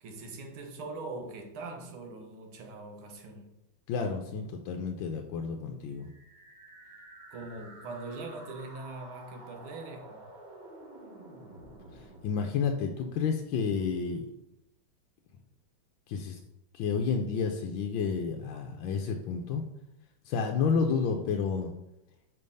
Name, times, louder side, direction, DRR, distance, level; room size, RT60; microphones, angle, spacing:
voice 1, 0.0-3.5 7.3-10.3, right 3 dB, 75° right, 3 dB, 1.8 m, -42 dB
voice 2, 3.9-6.1 11.9-14.3 16.1-16.4 16.7-19.7 20.3-21.7, left 5 dB, 75° left, 3 dB, 1.2 m, -30 dB
sound 1, 5.9-13.9, right 2 dB, 40° right, 0.6 m, -51 dB
5.3 x 3.3 x 5.4 m, 0.86 s
omnidirectional pair, 2.3 m